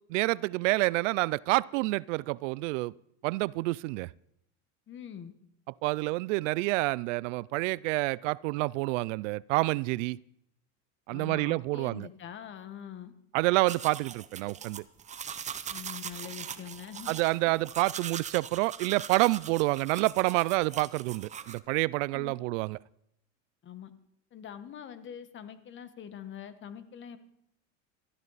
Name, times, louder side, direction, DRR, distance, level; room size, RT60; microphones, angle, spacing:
voice 1, 0.1-2.9 3.2-4.1 5.8-10.2 11.1-12.1 13.3-14.8 17.1-22.8, right 22 dB, 80° right, 0.5 m, -28 dB
voice 2, 4.9-5.3 11.1-13.1 15.7-17.1 22.1-22.3 23.6-23.9 24.3-27.2, left 9 dB, 30° left, 1.3 m, -44 dB
sound 1, 13.7-21.6, right 8 dB, 20° right, 0.7 m, -41 dB
18.5 x 13.0 x 4.1 m
supercardioid pair, 135°, 37 cm